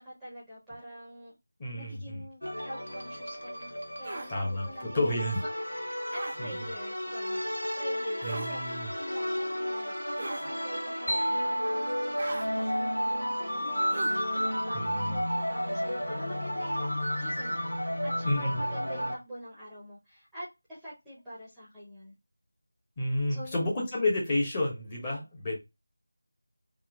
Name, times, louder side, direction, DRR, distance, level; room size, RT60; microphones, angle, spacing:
voice 1, 0.0-1.3 1.7-12.0 12.5-17.6 18.0-22.1 23.3-23.8, equal, ahead, 0.9 m, -45 dB
voice 2, 1.6-2.2 4.3-5.4 6.4-6.7 8.2-8.9 14.7-15.2 18.2-18.6 23.0-25.5, left 1 dB, 15° left, 1.2 m, -30 dB
sound 1, 2.4-19.2, equal, 80° left, 1.1 m, -32 dB
sound 2, 4.0-4.3 6.1-6.4 8.2-8.5 10.2-10.5 12.2-12.5 13.9-14.2, right 2 dB, 30° right, 0.6 m, -38 dB
sound 3, 11.1-14.8, right 1 dB, 85° right, 1.0 m, -36 dB
3.6 x 2.7 x 3.6 m
figure-of-eight pair, 165°, 0 cm